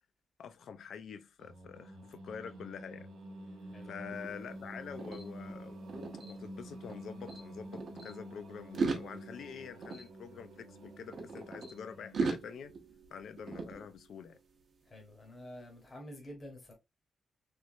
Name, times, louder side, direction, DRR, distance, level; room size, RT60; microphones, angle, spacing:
voice 1, 0.4-3.1 3.8-5.8 6.2-12.7 13.1-14.4, left 7 dB, 70° left, 0.4 m, -46 dB
Singing, 1.4-12.5, right 1 dB, 85° right, 0.9 m, -49 dB
voice 2, 3.7-4.1 14.9-16.7, left 1 dB, 25° left, 0.9 m, -49 dB
sound 1, 4.1-7.0 7.3-8.1 8.6-11.7 12.1-14.4, right 4 dB, 45° right, 0.7 m, -40 dB
3.2 x 3.0 x 2.6 m
wide cardioid pair, 155°, 0 cm